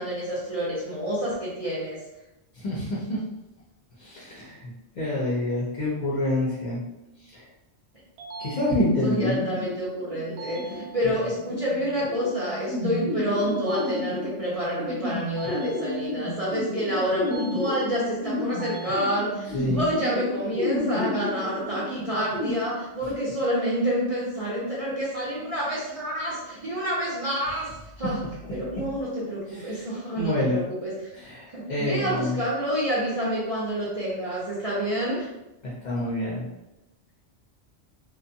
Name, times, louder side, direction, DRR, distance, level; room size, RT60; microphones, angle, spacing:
voice 1, 0.0-2.0 9.0-27.7 28.0-28.2 28.5-30.9 31.5-35.3, equal, 45° right, -7 dB, 0.5 m, -28 dB
voice 2, 2.6-3.2 4.0-6.8 7.2-7.4 8.4-9.4 19.5-19.8 28.7-28.8 29.5-29.8 30.2-30.6 31.1-32.4 35.6-36.5, left 1 dB, 50° left, -6 dB, 0.6 m, -27 dB
sound 1, 8.2-9.2 10.4-11.4 13.5-14.5 15.4-16.4 17.2-18.1 18.6-19.6, right 2 dB, 70° right, 0.8 m, -43 dB
sound 2, 8.8-22.5, left 1 dB, ahead, 0.6 m, -32 dB
2.5 x 2.2 x 2.6 m, 0.94 s
omnidirectional pair, 1.2 m